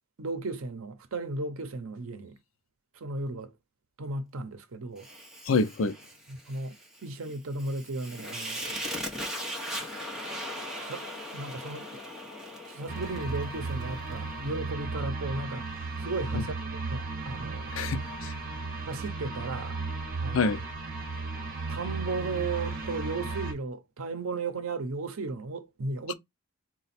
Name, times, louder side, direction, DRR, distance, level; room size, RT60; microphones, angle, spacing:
voice 1, 0.2-2.4 3.0-3.5 4.0-5.1 6.3-8.8 10.8-11.0 11.3-11.9 12.7-15.7 16.0-17.7 18.9-19.8 20.2-20.5 21.7-26.1, right 3 dB, 75° right, 0.7 m, -35 dB
Fire, 5.0-14.2, equal, ahead, 1.0 m, -39 dB
voice 2, 5.5-6.0 16.3-16.4 17.7-18.3 20.3-20.6 26.1-26.2, left 4 dB, 65° left, 0.5 m, -27 dB
sound 1, 12.9-23.5, right 3 dB, 40° right, 1.0 m, -35 dB
4.0 x 2.2 x 4.1 m
head